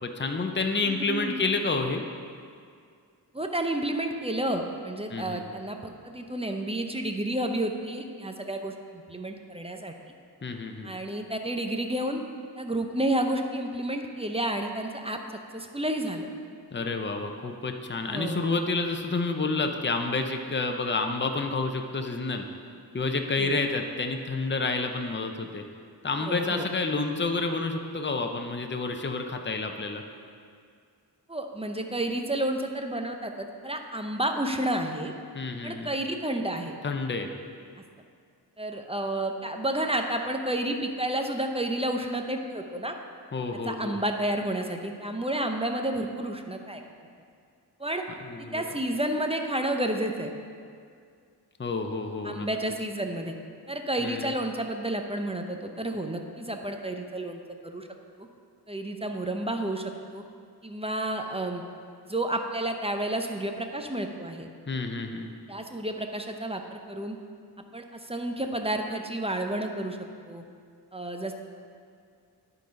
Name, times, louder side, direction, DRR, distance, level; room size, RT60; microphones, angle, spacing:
voice 1, 0.0-2.0 5.1-5.4 10.4-10.9 16.7-22.5 22.9-25.6 26.0-30.0 35.3-35.9 36.8-37.3 43.3-44.0 48.2-48.6 51.6-52.5 54.0-54.3 64.7-65.3, left 3 dB, 30° left, 5 dB, 0.6 m, -29 dB
voice 2, 0.8-1.4 3.3-9.9 10.8-12.2 12.6-15.2 15.5-16.3 18.1-18.5 23.4-23.6 26.3-26.7 31.3-35.1 35.6-36.7 38.6-42.9 43.6-46.8 47.8-48.0 48.4-50.3 52.2-53.3 53.7-57.9 58.2-58.3 58.7-60.2 60.6-61.6 62.0-64.5 65.5-67.2 67.7-70.0 70.3-70.4 70.9-71.3, right 1 dB, 15° right, 4 dB, 0.6 m, -31 dB
11.0 x 3.9 x 5.1 m, 2.2 s
wide cardioid pair, 45°, 41 cm